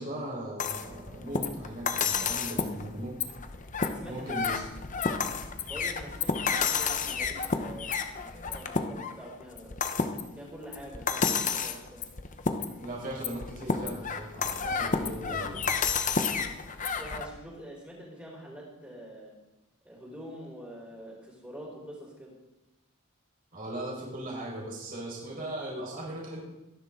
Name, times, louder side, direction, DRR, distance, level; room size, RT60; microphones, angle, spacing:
voice 1, 0.0-3.1 4.0-4.6 12.8-15.6 15.8-15.9 23.5-26.4, right 1 dB, 40° right, -3 dB, 4.7 m, -38 dB
sound 1, 0.6-17.3, left 5 dB, 35° left, 0.9 m, -31 dB
voice 2, 3.8-4.4 5.7-9.8 10.3-12.0 14.5-14.8 15.3-15.4 16.9-19.3 19.8-22.3, right 1 dB, 10° right, -5 dB, 4.9 m, -45 dB
23.5 x 11.0 x 3.8 m, 0.99 s
head